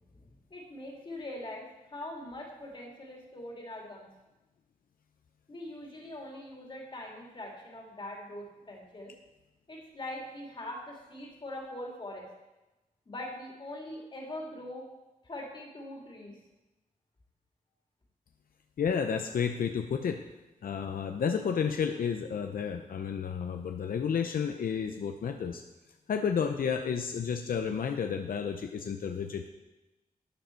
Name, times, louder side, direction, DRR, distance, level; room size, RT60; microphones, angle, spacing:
voice 1, 0.2-1.6 1.9-4.1 5.5-9.1 9.7-12.3 13.1-14.8 15.2-16.3, left 1 dB, 35° left, -1 dB, 2.5 m, -42 dB
voice 2, 18.8-20.2 20.6-25.6 26.1-29.5, left 7 dB, 80° left, 6 dB, 0.6 m, -31 dB
12.5 x 9.3 x 4.5 m, 1.0 s
wide cardioid pair, 150°, 15 cm